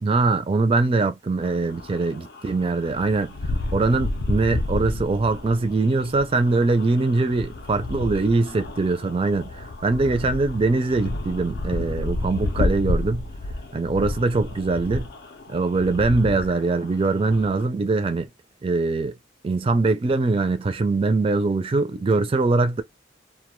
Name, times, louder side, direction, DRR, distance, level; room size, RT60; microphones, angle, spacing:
voice 1, 0.0-3.3 3.7-13.3 13.7-15.1 15.5-18.3 18.6-19.1 19.4-22.8, right 3 dB, 30° right, 0.4 m, -22 dB
sound 1, 1.4-17.7, left 2 dB, 60° left, 0.4 m, -31 dB
2.2 x 2.1 x 3.0 m
head